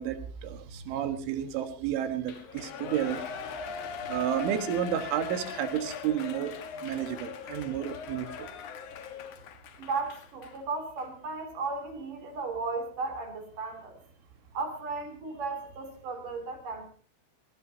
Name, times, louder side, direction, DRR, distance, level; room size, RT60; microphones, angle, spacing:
voice 1, 0.0-3.2 4.1-8.5, right 9 dB, 75° right, 9 dB, 3.9 m, -31 dB
Shout / Cheering, 2.2-10.6 11.0-11.1, left 6 dB, 65° left, 2.0 m, -40 dB
voice 2, 9.8-14.0 14.5-16.9, right 4 dB, 45° right, 6 dB, 4.0 m, -35 dB
21.5 x 19.0 x 2.8 m, 0.42 s
omnidirectional pair, 5.7 m